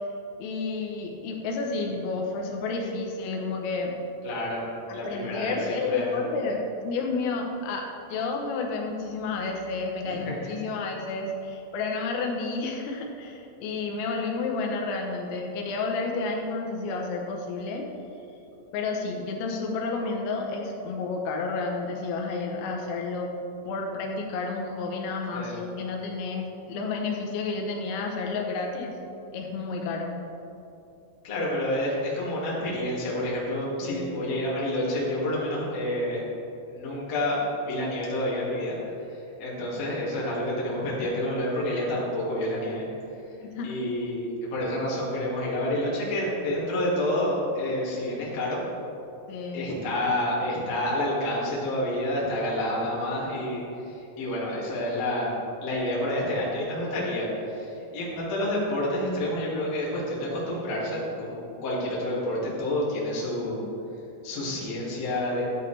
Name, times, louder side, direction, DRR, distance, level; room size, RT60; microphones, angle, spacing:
voice 1, 0.4-3.9 4.9-7.8 8.1-17.8 18.7-23.3 23.7-29.0 29.3-30.2 33.8-34.2 43.5-43.8 49.3-49.7, left 3 dB, 85° left, 1 dB, 3.7 m, -31 dB
voice 2, 4.2-4.6 4.9-6.1 10.0-10.5 25.3-25.6 31.2-36.2 36.7-38.8 39.1-42.8 43.6-48.6 49.5-55.3 55.6-63.6 64.2-65.4, left 1 dB, 45° left, -6 dB, 2.4 m, -29 dB
14.0 x 8.8 x 3.4 m, 2.8 s
omnidirectional pair, 5.9 m